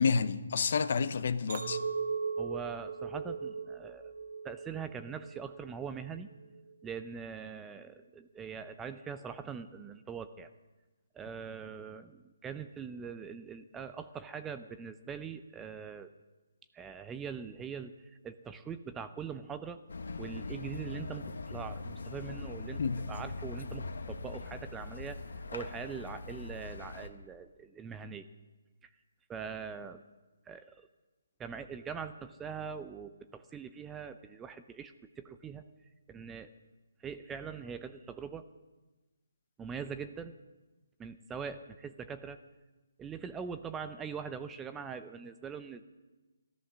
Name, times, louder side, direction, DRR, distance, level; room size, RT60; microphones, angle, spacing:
voice 1, 0.0-1.8 22.8-23.0, left 5 dB, 50° left, 0.8 m, -29 dB
Chink clink, 1.5-5.8 6.3-6.7, right 5 dB, 45° right, 1.5 m, -38 dB
voice 2, 2.4-4.1 4.4-6.3 6.8-10.5 11.1-16.1 16.7-17.9 18.2-19.8 20.2-22.8 23.1-25.2 25.5-28.3 29.3-30.0 30.5-30.9 31.4-35.6 36.1-36.5 37.0-38.5 39.6-40.3 41.0-42.4 43.0-45.8, right 6 dB, 10° right, 0.5 m, -42 dB
sound 1, 19.9-27.1, left 3 dB, 80° left, 1.4 m, -41 dB
13.5 x 13.5 x 6.2 m
hypercardioid pair, 165°, 0 cm